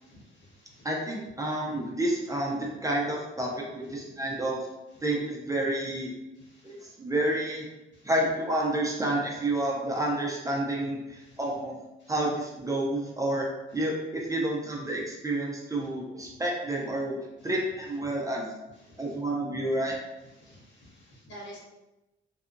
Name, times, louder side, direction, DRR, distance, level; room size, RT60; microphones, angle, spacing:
voice 1, 0.0-0.9 6.5-6.8 11.3-11.4 12.0-12.1 18.9-19.0 19.5-19.6 20.4-21.6, equal, 65° left, -5 dB, 1.1 m, -49 dB
voice 2, 0.8-4.7 5.0-6.1 6.6-7.7 8.0-11.8 12.1-13.5 13.7-18.5 19.0-19.9, right 1 dB, 15° right, -2 dB, 0.5 m, -29 dB
2.7 x 2.2 x 2.5 m, 1.0 s
cardioid pair, 90°, 20 cm